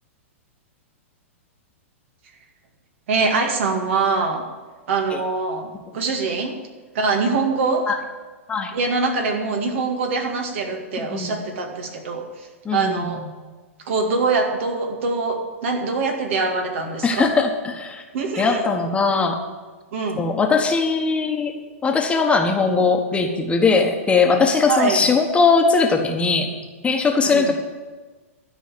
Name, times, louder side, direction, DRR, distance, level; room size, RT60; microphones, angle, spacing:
voice 1, 3.1-4.4 4.9-5.7 5.9-6.6 6.9-7.9 8.7-12.2 12.7-13.2 13.9-17.3 18.1-18.7 19.9-20.2 24.7-25.1 27.2-27.5, right 4 dB, 60° right, 3 dB, 2.1 m, -23 dB
voice 2, 12.6-13.3 17.0-18.0 18.3-19.4 20.2-21.5 21.8-26.5 26.8-27.5, left 4 dB, 15° left, 3 dB, 1.3 m, -20 dB
12.5 x 5.6 x 9.2 m, 1.3 s
hypercardioid pair, 115°, 7 cm